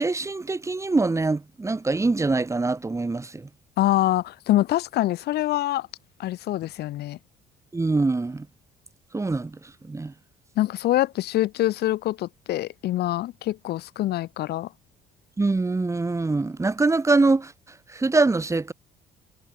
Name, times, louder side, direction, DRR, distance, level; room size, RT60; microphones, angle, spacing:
voice 1, 0.0-3.5 7.7-8.5 9.1-9.6 9.8-10.1 15.4-17.5 17.9-18.7, right 3 dB, 15° right, 4.9 m, -23 dB
voice 2, 3.8-5.9 6.2-7.2 10.6-14.7, left 15 dB, 75° left, 2.8 m, -25 dB
cardioid pair, 110°, 17 cm